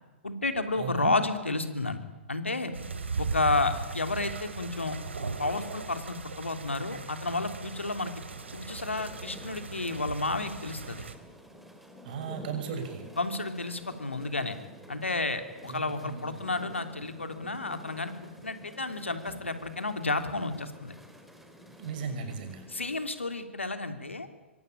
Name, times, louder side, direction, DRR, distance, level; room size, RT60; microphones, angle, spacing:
voice 1, 0.2-2.0 2.3-2.8 3.2-5.0 5.4-8.1 8.5-11.0 13.2-14.6 14.9-20.9 22.7-24.3, left 3 dB, 80° left, 8 dB, 3.2 m, -31 dB
voice 2, 0.8-1.2 3.1-3.3 12.0-13.1 15.7-16.4 21.8-22.7, right 6 dB, 50° right, 7 dB, 6.5 m, -36 dB
sound 1, 2.7-11.1, right 4 dB, 70° right, 2.9 m, -38 dB
sound 2, 3.6-23.0, equal, ahead, 4.2 m, -51 dB
26.5 x 24.0 x 8.9 m, 1.2 s
figure-of-eight pair, 110°, 7 cm